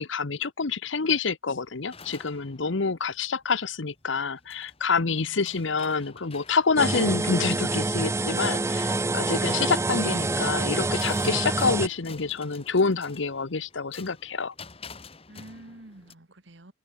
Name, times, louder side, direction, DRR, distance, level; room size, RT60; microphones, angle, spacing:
voice 1, 0.0-14.5, left 4 dB, 75° left, 1.0 m, -27 dB
sound 1, 1.5-16.1, left 4 dB, 30° left, 2.0 m, -50 dB
voice 2, 5.0-5.6 15.3-16.7, right 1 dB, 70° right, 1.9 m, -48 dB
sound 2, 6.8-11.9, right 2 dB, 15° right, 0.5 m, -26 dB
open air
head